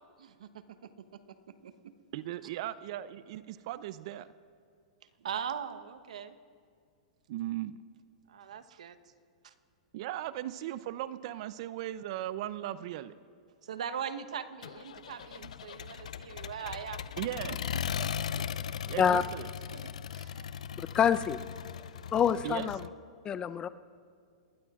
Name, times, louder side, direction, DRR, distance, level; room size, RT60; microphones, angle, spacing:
voice 1, 2.1-4.3 7.3-7.8 9.9-13.2 17.2-17.7 18.9-19.5 22.4-22.7, right 13 dB, 55° right, 15 dB, 0.5 m, -37 dB
voice 2, 5.2-6.3 8.3-9.0 9.4-9.5 13.6-17.0 17.7-18.7 19.7-20.4, right 8 dB, 75° right, 11 dB, 1.0 m, -41 dB
Accelerating revving vroom, 14.6-22.9, left 8 dB, 80° left, 0.5 m, -38 dB
voice 3, 20.9-21.4 22.1-22.8 23.2-23.7, left 8 dB, 25° left, 13 dB, 0.6 m, -26 dB
29.0 x 19.5 x 2.4 m, 2.2 s
hypercardioid pair, 115°, 4 cm